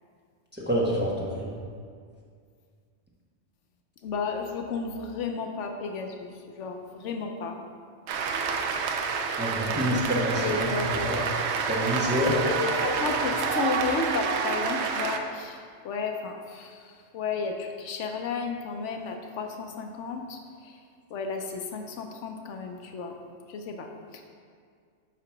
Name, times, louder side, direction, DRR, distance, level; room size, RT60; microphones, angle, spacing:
voice 1, 0.5-1.5 9.4-10.6 11.0-11.2 11.6-12.5, equal, 10° right, -5 dB, 1.0 m, -27 dB
voice 2, 4.0-7.6 10.4-11.2 12.4-20.8 21.1-23.2 23.5-24.2, left 4 dB, 75° left, 3 dB, 0.9 m, -33 dB
Cheering / Applause, 8.1-15.2, right 5 dB, 70° right, 0.8 m, -28 dB
8.3 x 2.9 x 5.7 m, 2.1 s
omnidirectional pair, 1.2 m